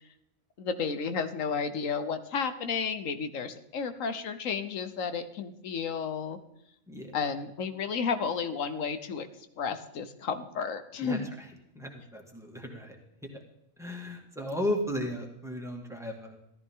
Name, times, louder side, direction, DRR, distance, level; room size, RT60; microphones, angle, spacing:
voice 1, 0.6-6.4 7.1-9.3 9.6-11.3, left 6 dB, 75° left, 10 dB, 1.3 m, -32 dB
voice 2, 6.9-7.2 11.0-11.2 11.7-13.0 13.2-13.4 13.8-16.4, left 1 dB, ahead, 2 dB, 2.0 m, -35 dB
14.0 x 13.5 x 3.7 m, 0.79 s
omnidirectional pair, 1.4 m